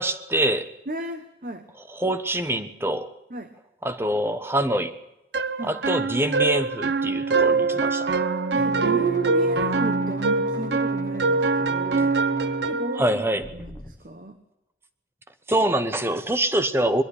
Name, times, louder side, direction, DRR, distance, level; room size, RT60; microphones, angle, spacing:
voice 1, 0.0-0.7 1.9-3.1 3.8-5.0 5.6-8.1 13.0-13.5 15.5-17.0, right 1 dB, 15° right, 10 dB, 1.0 m, -25 dB
voice 2, 0.9-1.7 3.3-3.5 5.6-5.8 8.5-12.1 12.6-14.4, right 1 dB, 50° right, 7 dB, 1.1 m, -34 dB
sound 1, 5.3-13.0, right 4 dB, 80° right, 1.0 m, -24 dB
sound 2, 8.6-12.7 13.4-13.9, left 1 dB, 20° left, 1.1 m, -36 dB
22.0 x 12.0 x 9.9 m, 0.93 s
head